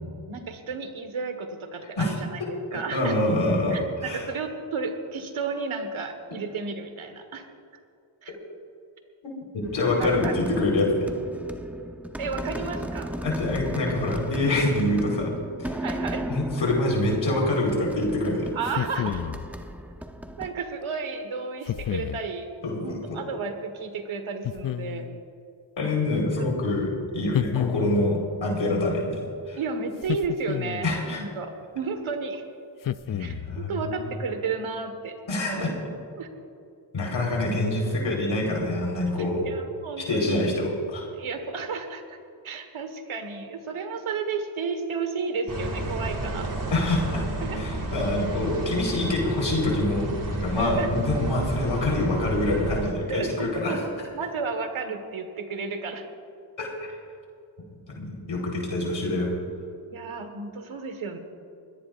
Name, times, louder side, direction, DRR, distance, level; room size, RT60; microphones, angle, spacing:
voice 1, 0.3-3.2 3.7-7.5 8.2-8.3 9.9-10.3 12.2-13.1 15.8-16.3 18.5-19.2 20.4-22.5 22.8-25.1 26.1-26.5 29.6-32.4 33.2-35.1 35.5-35.7 36.2-36.3 39.2-40.5 41.1-42.2 42.4-46.5 47.4-47.6 50.6-50.9 53.1-53.8 54.1-56.0 59.9-61.2, right 4 dB, 80° right, 6 dB, 1.7 m, -32 dB
voice 2, 2.7-4.3 9.2-11.1 13.2-15.3 15.6-15.8 16.3-18.5 22.6-23.2 25.8-29.6 30.8-31.2 33.1-33.9 35.3-35.7 36.9-39.4 40.0-41.1 46.6-47.2 47.5-53.8 56.6-56.9 58.0-59.3, left 2 dB, 70° left, -1 dB, 4.6 m, -26 dB
sound 1, 9.6-20.5, equal, 5° right, 0.9 m, -35 dB
sound 2, 18.6-19.5 21.7-22.3 24.4-25.2 27.3-28.2 30.0-31.0 32.8-33.6, left 11 dB, 45° left, 0.5 m, -30 dB
sound 3, 45.5-52.9, right 2 dB, 40° right, 2.7 m, -31 dB
23.0 x 17.5 x 2.6 m, 2.5 s
cardioid pair, 65°, 48 cm